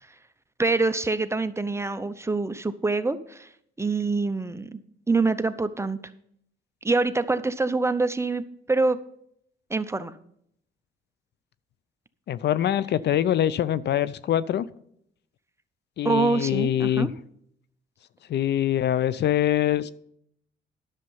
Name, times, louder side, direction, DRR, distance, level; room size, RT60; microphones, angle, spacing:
voice 1, 0.6-3.5 3.8-4.8 5.1-6.0 6.8-9.0 9.7-10.1 16.0-17.1, right 3 dB, 15° right, 11 dB, 0.7 m, -25 dB
voice 2, 12.3-14.7 16.0-17.1 18.3-19.9, left 11 dB, 60° left, 18 dB, 0.5 m, -24 dB
11.0 x 6.8 x 5.5 m, 0.70 s
cardioid pair, 90°, 20 cm